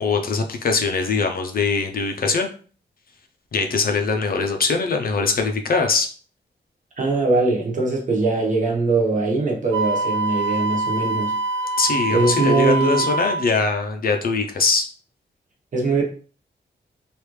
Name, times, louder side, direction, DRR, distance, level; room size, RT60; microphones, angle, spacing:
voice 1, 0.0-2.5 3.5-6.1 11.8-14.9, left 4 dB, 55° left, 4 dB, 0.5 m, -22 dB
voice 2, 7.0-11.3 12.1-13.0 15.7-16.0, right 3 dB, 45° right, -1 dB, 1.0 m, -21 dB
Wind instrument woodwind instrument, 9.7-13.4, right 2 dB, 80° right, 0.6 m, -24 dB
3.2 x 2.5 x 3.1 m, 0.41 s
wide cardioid pair, 155°, 19 cm